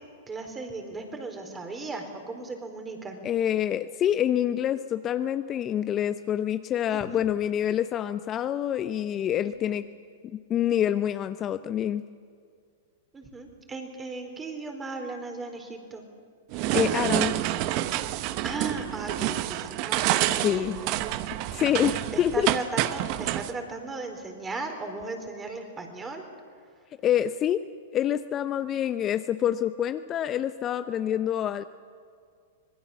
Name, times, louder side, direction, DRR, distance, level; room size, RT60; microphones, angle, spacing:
voice 1, 0.3-3.2 6.9-7.2 9.7-9.8 13.1-16.1 18.4-20.9 22.1-26.2, right 3 dB, 15° right, 4 dB, 4.1 m, -36 dB
voice 2, 3.2-9.8 10.5-12.0 16.7-17.4 20.4-20.8 21.5-22.5 27.0-27.6 27.9-31.6, left 10 dB, 30° left, 11 dB, 0.7 m, -26 dB
sound 1, 16.5-23.5, right 14 dB, 45° right, 1.0 m, -28 dB
26.0 x 19.5 x 7.2 m, 2.2 s
hypercardioid pair, 115°, 0 cm